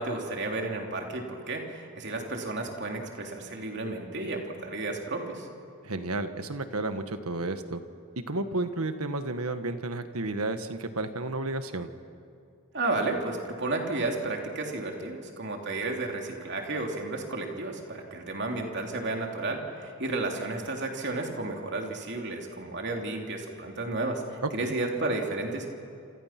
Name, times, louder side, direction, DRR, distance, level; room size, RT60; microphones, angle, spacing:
voice 1, 0.0-5.5 12.7-25.7, right 2 dB, 50° right, 2 dB, 3.1 m, -32 dB
voice 2, 5.8-7.8 8.3-11.9 24.6-24.7, right 2 dB, 80° right, 9 dB, 1.5 m, -32 dB
28.0 x 28.0 x 6.0 m, 2.5 s
head